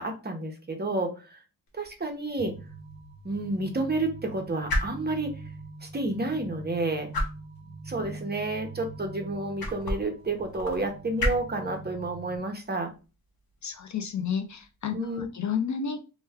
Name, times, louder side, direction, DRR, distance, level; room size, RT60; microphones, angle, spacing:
voice 1, 0.0-1.4 1.7-2.6 3.2-5.3 5.8-7.1 7.9-12.9 14.9-15.3, right 2 dB, 25° right, 3 dB, 0.7 m, -30 dB
sound 1, 1.7-15.2, left 1 dB, 75° left, 0.8 m, -37 dB
sound 2, 2.4-12.4, right 3 dB, 15° left, 1.1 m, -43 dB
voice 2, 13.6-16.0, left 7 dB, 55° left, 7 dB, 0.4 m, -31 dB
3.0 x 2.2 x 3.4 m, 0.32 s
wide cardioid pair, 105°, 36 cm